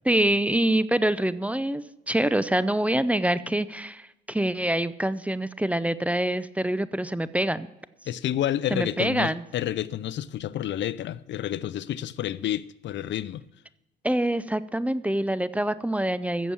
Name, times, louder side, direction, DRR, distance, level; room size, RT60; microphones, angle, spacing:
voice 1, 0.1-7.7 8.7-9.4 14.0-16.5, right 1 dB, 5° right, 0.5 m, -25 dB
voice 2, 8.1-13.4, left 11 dB, 65° left, 0.5 m, -29 dB
15.0 x 7.1 x 7.1 m
cardioid pair, 90°, 20 cm